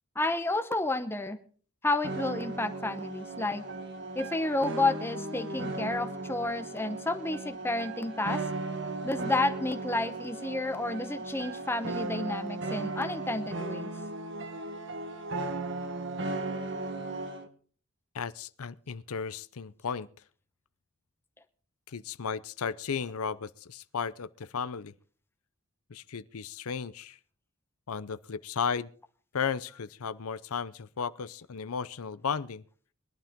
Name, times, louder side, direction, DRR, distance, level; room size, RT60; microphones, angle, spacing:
voice 1, 0.2-1.4 1.8-3.6 4.1-8.4 9.0-13.9, left 2 dB, 10° left, 0.9 m, -31 dB
sound 1, 2.0-17.5, right 2 dB, 55° right, 1.2 m, -36 dB
voice 2, 18.1-20.1 21.9-24.9 25.9-27.2 27.9-28.9 29.3-32.6, left 6 dB, 75° left, 0.6 m, -34 dB
21.5 x 11.5 x 3.6 m
head